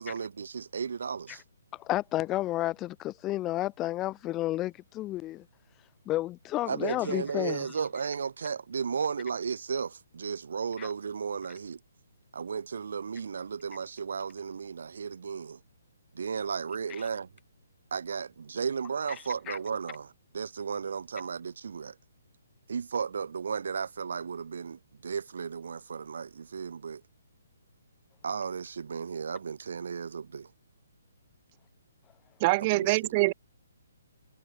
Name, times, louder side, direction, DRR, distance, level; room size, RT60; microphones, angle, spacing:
voice 1, 0.0-1.4 6.7-11.8 12.3-15.6 16.1-17.3 17.9-21.9 22.7-27.0 28.2-30.5 32.7-33.1, right 6 dB, 70° right, 1.6 m, -34 dB
voice 2, 1.9-5.4 6.1-7.6 10.8-10.9 19.5-19.6, left 16 dB, 15° left, 0.7 m, -31 dB
voice 3, 32.4-33.3, right 24 dB, 30° right, 0.4 m, -24 dB
hypercardioid pair, 160°, 0 cm